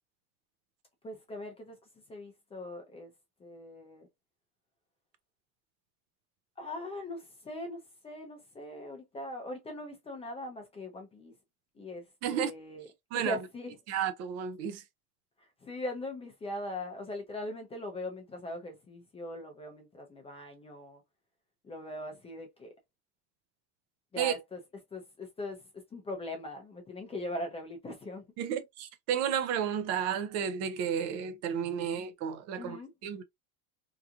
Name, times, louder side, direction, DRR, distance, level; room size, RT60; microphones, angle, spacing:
voice 1, 1.0-1.8 2.1-3.1 3.4-4.0 6.6-11.3 11.8-12.0 12.3-12.9 13.1-13.7 15.6-21.0 21.6-22.7 24.1-24.6 24.9-28.2 32.6-32.9, left 1 dB, 15° left, 0.5 m, -40 dB
voice 2, 13.9-14.8 24.2-24.4 28.4-32.8 33.0-33.2, right 8 dB, 40° right, 0.4 m, -32 dB
2.9 x 2.4 x 2.3 m
supercardioid pair, 145°, 44 cm